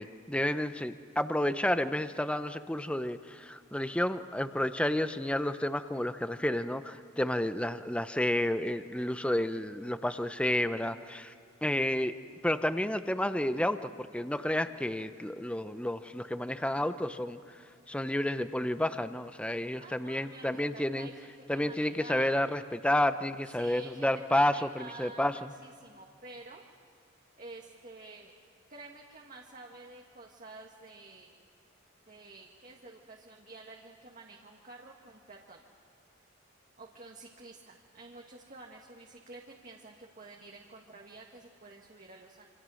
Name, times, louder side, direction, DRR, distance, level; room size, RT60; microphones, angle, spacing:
voice 1, 0.0-11.3 11.6-12.1 12.4-17.4 17.9-21.1 21.5-25.5, left 1 dB, 5° left, 11 dB, 0.6 m, -30 dB
voice 2, 19.8-22.4 23.4-26.6 27.0-27.1 27.4-28.4 28.7-31.4 32.1-35.6 36.8-42.5, right 3 dB, 40° right, 0 dB, 1.7 m, -50 dB
27.5 x 26.0 x 6.4 m, 2.4 s
head